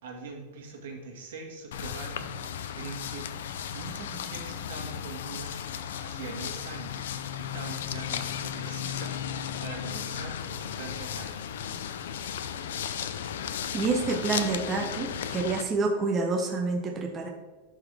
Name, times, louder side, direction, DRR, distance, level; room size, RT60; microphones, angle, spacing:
voice 1, 0.0-3.3 3.7-5.6 6.0-11.5, right 4 dB, 75° right, 1 dB, 1.8 m, -43 dB
sound 1, 1.7-15.6, left 9 dB, 85° left, 0.5 m, -35 dB
voice 2, 13.7-17.3, right 3 dB, 20° right, 1 dB, 0.6 m, -28 dB
11.5 x 4.0 x 3.4 m, 1.3 s
supercardioid pair, 165°, 0 cm